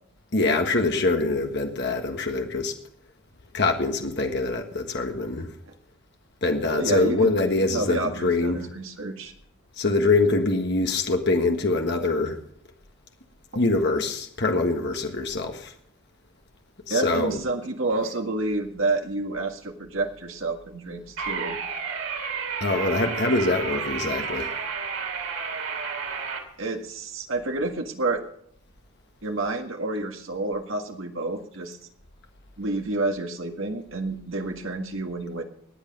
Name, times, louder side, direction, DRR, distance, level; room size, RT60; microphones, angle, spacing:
voice 1, 0.3-2.7 3.5-5.5 6.4-8.7 9.8-12.4 13.6-15.7 16.9-17.4 22.6-24.5, left 3 dB, 55° left, 3 dB, 1.6 m, -24 dB
voice 2, 6.7-9.3 16.9-21.6 26.6-28.2 29.2-31.8 32.6-35.4, right 2 dB, 65° right, 4 dB, 1.8 m, -29 dB
sound 1, 21.2-26.4, right 6 dB, 90° right, 2.8 m, -31 dB
20.0 x 8.3 x 5.4 m, 0.66 s
head